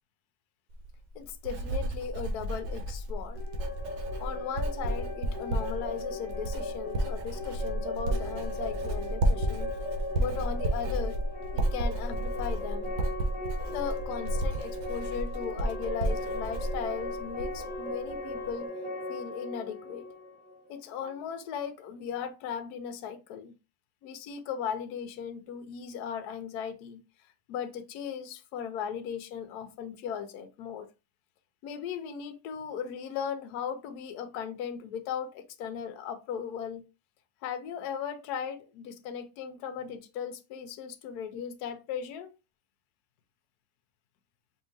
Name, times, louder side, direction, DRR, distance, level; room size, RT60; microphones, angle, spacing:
Writing, 0.7-17.8 18.1-18.5, right 1 dB, 80° right, 1.4 m, -32 dB
voice 1, 1.1-3.4 4.2-9.7 10.2-11.2 11.5-12.9 13.7-18.7 19.1-20.1 20.7-23.5 24.0-27.0 27.5-30.9 31.6-36.8 37.4-42.3, left 7 dB, 70° left, 1.1 m, -37 dB
sound 1, 3.3-21.1, left 2 dB, 5° right, 1.8 m, -38 dB
4.7 x 2.9 x 2.6 m
omnidirectional pair, 1.9 m